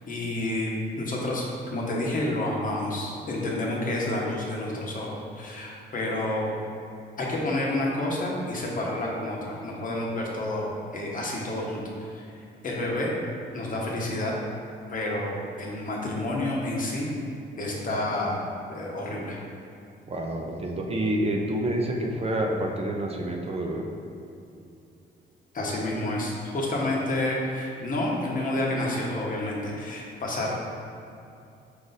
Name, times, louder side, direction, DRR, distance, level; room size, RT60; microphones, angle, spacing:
voice 1, 0.1-6.5 7.2-12.3 12.6-13.1 13.5-14.3 14.9-17.1 17.6-18.4 18.7-19.4 25.5-30.5, left 1 dB, 45° left, -3 dB, 0.9 m, -29 dB
voice 2, 20.1-23.9, right 1 dB, 30° right, 1 dB, 0.5 m, -28 dB
4.9 x 2.5 x 4.0 m, 2.6 s
cardioid pair, 90°, 20 cm